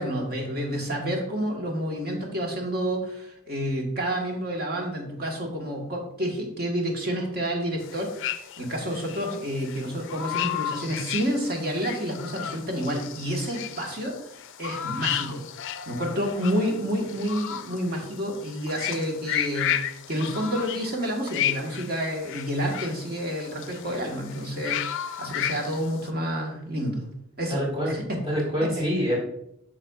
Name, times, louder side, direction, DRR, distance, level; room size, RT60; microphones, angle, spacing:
voice 1, 0.0-15.4 15.9-27.1 27.4-28.2 28.6-28.9, equal, 45° right, 1 dB, 1.4 m, -29 dB
sound 1, 7.8-26.1, left 10 dB, 60° left, 0.4 m, -34 dB
voice 2, 27.5-27.9 28.3-29.2, equal, 30° right, -4 dB, 2.3 m, -25 dB
7.4 x 5.9 x 2.4 m, 0.77 s
head